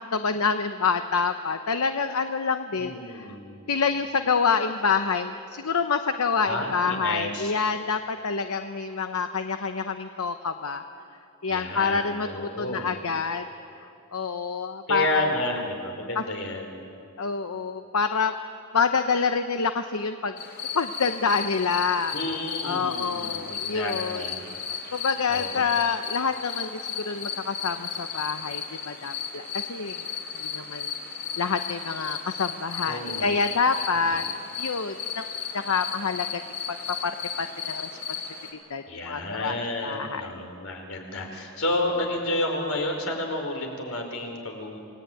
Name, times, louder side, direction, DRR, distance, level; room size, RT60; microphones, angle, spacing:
voice 1, 0.0-3.3 3.7-10.8 11.4-13.4 14.1-15.3 17.2-18.3 18.7-20.4 20.7-22.1 22.6-24.2 24.9-30.0 30.4-30.9 31.4-34.3 34.6-36.4 36.7-36.8 37.0-37.9 38.7-39.6 39.8-40.4, left 5 dB, 90° left, 8 dB, 0.9 m, -27 dB
voice 2, 2.8-3.6 6.4-7.5 11.5-13.0 14.9-16.9 22.1-24.5 25.3-25.7 32.8-33.4 33.9-34.3 38.9-44.8, left 1 dB, 70° left, 2 dB, 4.8 m, -31 dB
sound 1, 20.4-38.5, left 6 dB, 50° left, 4.2 m, -35 dB
28.5 x 19.0 x 9.2 m, 2.7 s
head